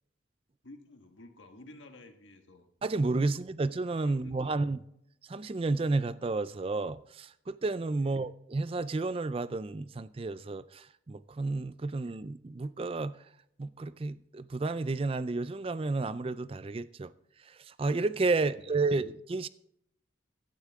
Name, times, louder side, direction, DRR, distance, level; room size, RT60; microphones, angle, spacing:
voice 1, 0.6-2.6 3.2-3.4 4.0-4.6 8.0-8.1 18.5-19.0, left 2 dB, 80° left, 1.6 m, -53 dB
voice 2, 2.8-4.8 5.3-13.2 13.6-17.1 17.4-19.5, right 3 dB, 30° right, 0.4 m, -31 dB
16.5 x 11.5 x 3.6 m
head